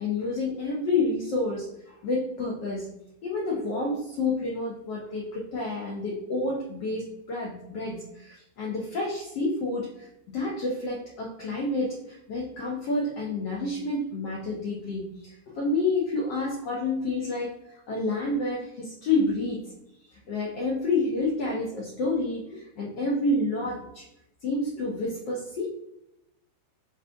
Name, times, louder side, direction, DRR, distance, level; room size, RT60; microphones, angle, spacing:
voice 1, 0.0-2.9 3.2-19.6 20.1-24.0 24.4-25.7, left 2 dB, 45° left, -3 dB, 0.5 m, -29 dB
2.5 x 2.1 x 2.5 m, 0.84 s
figure-of-eight pair, 90°, 0 cm